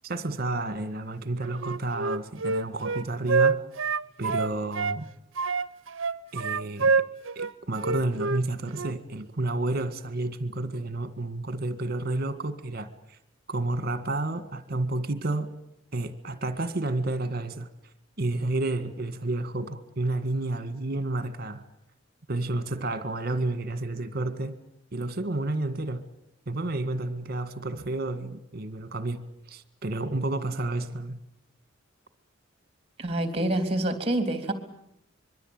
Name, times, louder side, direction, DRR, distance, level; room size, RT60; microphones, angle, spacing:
voice 1, 0.0-3.6 4.2-5.1 6.3-6.9 7.4-13.2 13.5-15.5 15.9-17.7 18.2-21.6 22.3-24.6 24.9-26.0 26.5-31.2, right 2 dB, 50° right, 1.8 m, -30 dB
Wind instrument woodwind instrument, 1.6-5.0 5.4-8.4 8.7-9.0, right 4 dB, 70° right, 0.9 m, -27 dB
voice 2, 33.0-34.5, right 1 dB, 30° right, 3.4 m, -27 dB
25.5 x 23.0 x 9.0 m
head